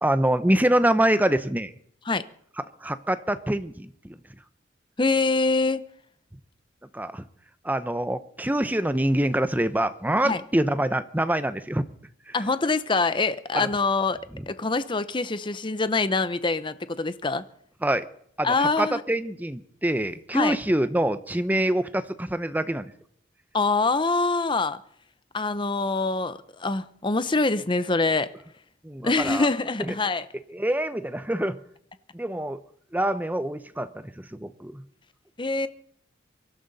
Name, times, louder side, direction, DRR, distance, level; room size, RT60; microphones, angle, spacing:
voice 1, 0.0-1.7 2.8-4.1 6.9-7.2 7.6-11.8 12.3-12.4 13.5-13.7 17.8-18.1 18.4-22.9 28.8-29.5 29.9-30.0 30.5-31.6 32.1-32.6 32.9-34.8, right 1 dB, 10° right, 0.8 m, -25 dB
voice 2, 5.0-5.8 10.2-10.4 12.3-14.2 14.5-17.4 18.4-19.0 20.3-20.6 23.5-24.8 25.3-28.3 29.0-30.3 35.4-35.7, left 3 dB, 25° left, 0.7 m, -24 dB
24.0 x 12.5 x 4.1 m
head